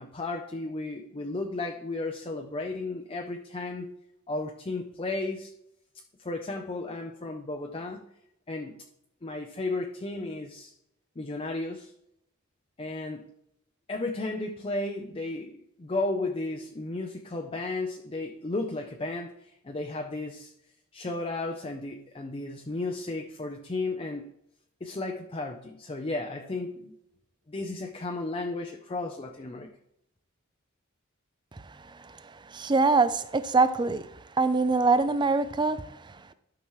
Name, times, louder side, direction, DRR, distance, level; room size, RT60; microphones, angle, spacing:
voice 1, 0.0-3.9 4.3-5.5 6.2-8.1 8.5-8.8 9.2-10.7 11.2-11.9 12.8-13.3 13.9-20.5 20.9-24.3 24.8-27.0 27.5-29.7, left 2 dB, 30° left, 0.6 m, -34 dB
voice 2, 32.5-34.1 34.4-36.3, right 3 dB, 20° right, 0.4 m, -24 dB
12.0 x 5.9 x 3.1 m
head